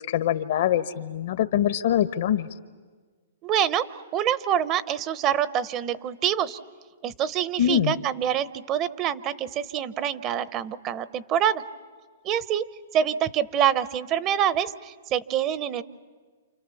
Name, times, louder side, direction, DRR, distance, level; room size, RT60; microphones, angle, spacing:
voice 1, 0.1-2.5 7.6-7.9, left 10 dB, 60° left, 12 dB, 1.2 m, -23 dB
voice 2, 3.4-6.6 7.0-11.6 12.2-12.7 12.9-15.8, right 9 dB, 30° right, 15 dB, 0.8 m, -26 dB
29.0 x 28.5 x 7.1 m, 1.5 s
hypercardioid pair, 140°, 0 cm